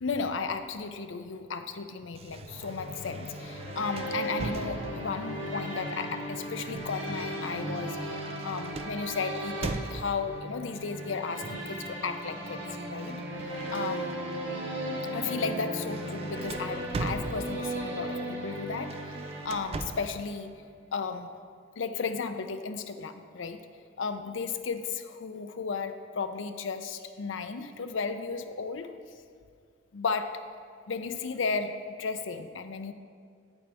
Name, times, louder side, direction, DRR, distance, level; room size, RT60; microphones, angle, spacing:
voice 1, 0.0-12.6 12.9-13.2 13.7-14.2 15.1-20.5 20.9-21.3 21.8-23.6 24.0-28.9 29.9-30.4 30.9-32.9, left 5 dB, 75° left, 8 dB, 0.5 m, -34 dB
sound 1, 2.1-5.2 6.2-10.4 11.4-11.8 12.1-14.4 14.9-15.1 15.4-17.8 18.7-20.2, right 3 dB, 30° right, 0.3 m, -41 dB
sound 2, 2.4-20.1, right 1 dB, 70° right, 1.5 m, -36 dB
9.1 x 8.6 x 3.5 m, 2.1 s
head